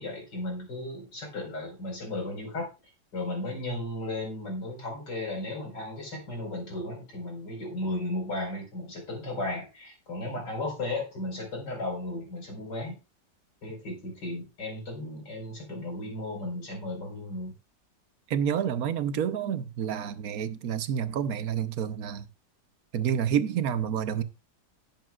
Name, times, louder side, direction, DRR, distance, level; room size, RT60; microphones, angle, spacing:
voice 1, 0.0-2.7 3.1-13.0 13.6-17.5, left 2 dB, 80° left, 5.4 m, -35 dB
voice 2, 18.3-22.3 22.9-24.2, right 8 dB, 60° right, 1.2 m, -29 dB
18.0 x 7.5 x 2.4 m
omnidirectional pair, 1.8 m